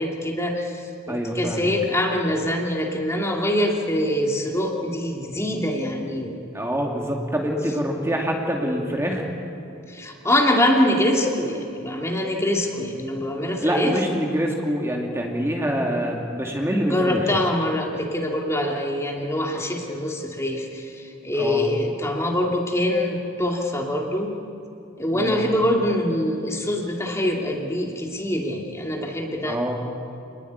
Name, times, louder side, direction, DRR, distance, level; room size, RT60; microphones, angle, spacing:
voice 1, 0.0-6.4 9.9-14.0 16.9-24.3 25.0-29.6, left 1 dB, 15° left, 0 dB, 2.6 m, -24 dB
voice 2, 1.1-1.7 6.5-9.3 13.6-17.3 21.4-21.7 25.1-25.4 29.4-29.8, equal, 10° right, 0 dB, 2.5 m, -25 dB
28.0 x 20.5 x 9.5 m, 2.7 s
head